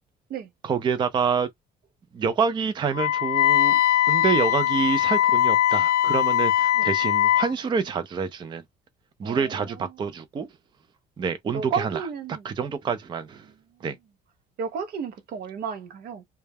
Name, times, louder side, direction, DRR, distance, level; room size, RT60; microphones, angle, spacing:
voice 1, 0.6-1.5 2.1-3.8 4.1-8.6 9.2-10.5 11.2-12.0 12.4-13.5 13.8-14.0, right 6 dB, 25° right, 0.4 m, -27 dB
Wind instrument woodwind instrument, 2.9-7.5, left 12 dB, 75° left, 0.4 m, -21 dB
voice 2, 9.2-10.0 11.5-12.5 13.4-13.5 14.6-16.2, right 6 dB, 65° right, 0.6 m, -33 dB
2.2 x 2.0 x 3.3 m
cardioid pair, 110°, 17 cm